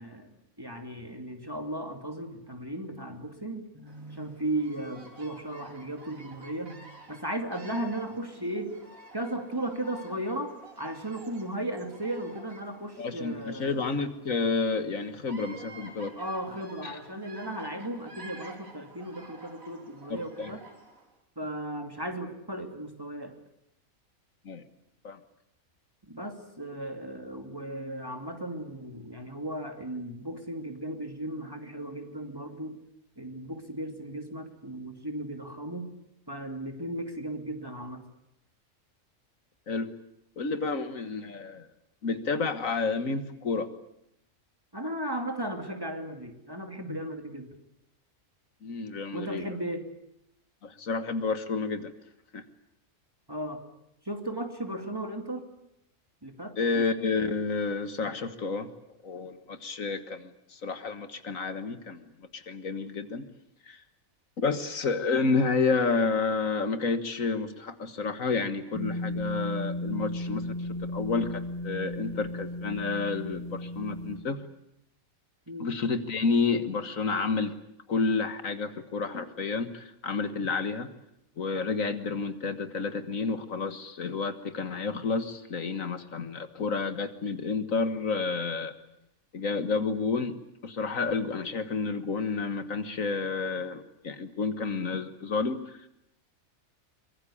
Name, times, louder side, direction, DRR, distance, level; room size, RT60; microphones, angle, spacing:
voice 1, 0.0-6.8 7.1-8.8 9.1-13.8 16.1-20.6 21.4-23.4 26.1-32.8 33.2-35.9 36.3-38.1 44.7-47.6 49.1-49.9 53.3-53.6 54.0-55.4 56.2-56.6 75.5-75.8, right 1 dB, 15° right, 5 dB, 2.6 m, -36 dB
Bird vocalization bird call bird song, 3.9-21.1, right 2 dB, 80° right, 4.0 m, -50 dB
voice 2, 13.0-16.1 16.8-17.0 20.1-20.5 24.5-24.6 25.0-25.2 39.7-39.9 40.4-41.7 42.0-43.7 46.9-47.0 48.6-49.4 50.6-51.9 52.3-52.4 56.6-58.7 59.0-62.0 62.3-63.3 63.7-63.8 64.4-70.5 70.9-74.4 75.6-77.5 77.9-80.9 81.4-88.7 89.3-90.4 90.6-95.6, left 4 dB, 70° left, 10 dB, 1.9 m, -30 dB
sound 1, 68.7-74.2, left 1 dB, 10° left, 4.4 m, -35 dB
24.0 x 22.5 x 8.6 m, 0.80 s
omnidirectional pair, 1.4 m